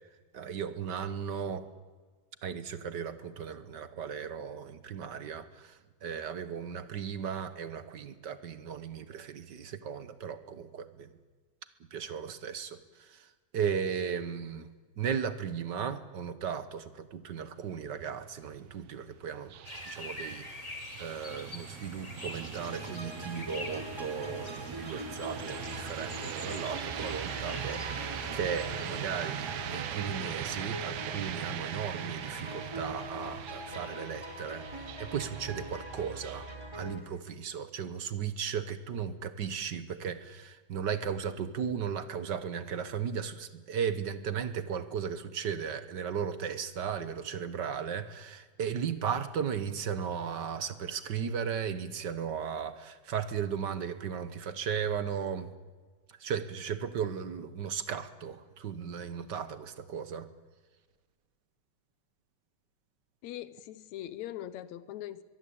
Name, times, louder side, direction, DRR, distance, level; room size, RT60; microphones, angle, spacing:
voice 1, 0.3-1.7 2.4-11.1 11.9-14.7 15.0-19.5 19.9-20.7 21.0-36.5 36.7-55.5 56.2-60.3, right 7 dB, 55° right, 12 dB, 1.2 m, -36 dB
sound 1, 17.6-36.6, right 10 dB, 70° right, 2.3 m, -41 dB
sound 2, 19.6-36.6, left 2 dB, 15° left, 1.3 m, -48 dB
sound 3, 22.5-37.0, equal, 10° right, 3.4 m, -43 dB
voice 2, 63.2-65.2, left 12 dB, 75° left, 16 dB, 2.1 m, -41 dB
22.5 x 22.0 x 8.6 m, 1.4 s
omnidirectional pair, 3.3 m